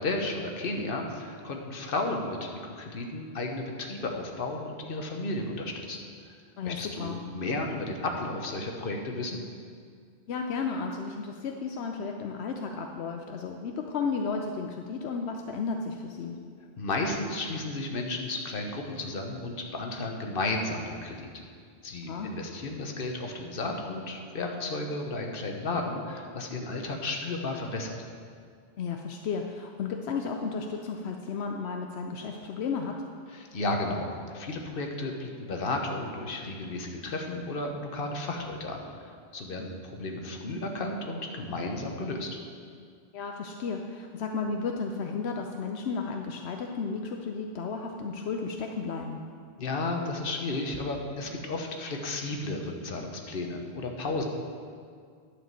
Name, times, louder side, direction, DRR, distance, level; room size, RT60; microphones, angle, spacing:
voice 1, 0.0-6.0 6.6-9.4 16.8-21.3 21.8-28.0 33.3-34.1 34.3-42.4 49.6-54.2, left 2 dB, 60° left, 2 dB, 1.2 m, -33 dB
voice 2, 6.6-7.2 10.3-16.4 22.1-22.3 28.8-32.9 43.1-49.2, left 5 dB, 80° left, 3 dB, 0.9 m, -33 dB
11.0 x 5.0 x 7.4 m, 2.1 s
omnidirectional pair, 1.1 m